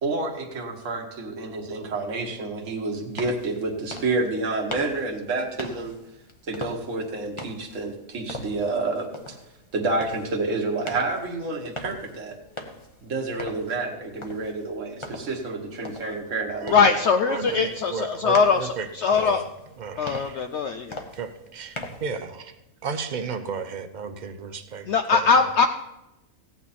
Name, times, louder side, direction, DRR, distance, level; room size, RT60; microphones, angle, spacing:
voice 1, 0.0-6.0 6.5-9.4 9.7-12.4 13.0-17.0, right 3 dB, 65° right, 2 dB, 1.7 m, -29 dB
sound 1, 2.9-22.1, left 1 dB, 25° left, 1.1 m, -41 dB
voice 2, 16.7-18.6 19.0-19.4 20.0-21.0 24.9-25.7, left 5 dB, 60° left, 7 dB, 0.8 m, -21 dB
voice 3, 17.3-19.5 19.8-20.4 21.1-22.5 22.8-25.5, right 5 dB, 40° right, 8 dB, 0.8 m, -34 dB
15.5 x 9.0 x 4.2 m, 0.94 s
omnidirectional pair, 1.4 m